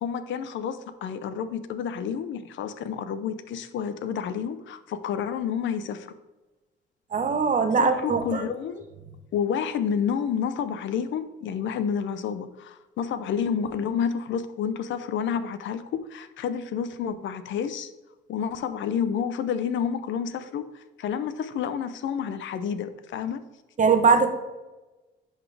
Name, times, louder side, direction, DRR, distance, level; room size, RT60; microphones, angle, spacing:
voice 1, 0.0-6.1 7.8-8.8 9.3-17.9 18.3-23.4, left 7 dB, 75° left, 12 dB, 0.6 m, -29 dB
voice 2, 7.1-8.5 23.8-24.3, right 5 dB, 40° right, 7 dB, 0.9 m, -21 dB
10.5 x 4.1 x 3.4 m, 1.1 s
cardioid pair, 90°, 20 cm